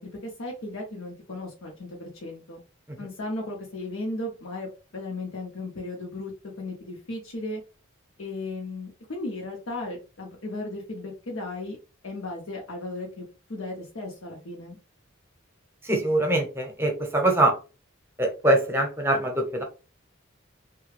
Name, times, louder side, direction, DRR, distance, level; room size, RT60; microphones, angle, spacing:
voice 1, 0.0-2.6 3.0-6.3 6.6-7.6 8.2-11.8 12.0-14.8, left 2 dB, 85° left, -1 dB, 0.8 m, -36 dB
voice 2, 15.8-17.6 18.2-19.6, right 1 dB, 10° right, 2 dB, 0.7 m, -23 dB
3.3 x 2.3 x 3.2 m, 0.32 s
head